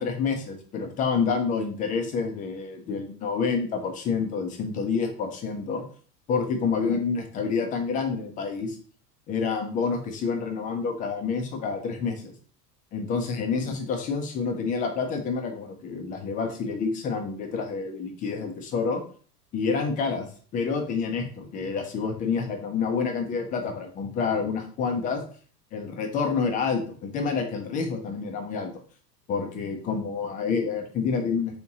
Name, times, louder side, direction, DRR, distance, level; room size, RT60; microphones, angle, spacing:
voice 1, 0.0-5.8 6.3-8.8 9.3-12.3 12.9-19.0 19.5-20.3 20.5-25.2 25.7-28.7 29.3-31.6, left 5 dB, 20° left, 5 dB, 0.3 m, -28 dB
3.5 x 2.8 x 2.7 m, 0.43 s
hypercardioid pair, 90°, 50 cm